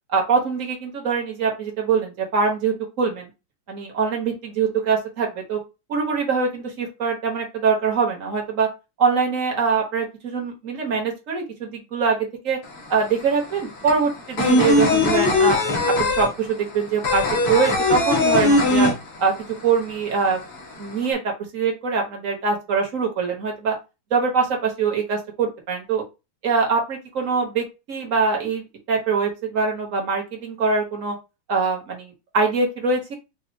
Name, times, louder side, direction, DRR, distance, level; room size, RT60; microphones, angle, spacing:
voice 1, 0.1-3.3 3.7-5.6 5.9-8.7 9.0-12.2 12.4-12.6 12.9-15.6 16.0-18.9 19.2-19.3 19.6-20.4 20.8-21.2 21.5-23.7 24.1-26.0 26.4-28.6 28.9-31.2 31.5-33.2, right 5 dB, 45° right, 0 dB, 1.2 m, -23 dB
sound 1, 12.6-12.7 13.0-19.6 19.8-19.9 20.3-21.1, left 2 dB, 90° left, 2.3 m, -20 dB
5.4 x 2.4 x 2.7 m, 0.27 s
omnidirectional pair, 2.4 m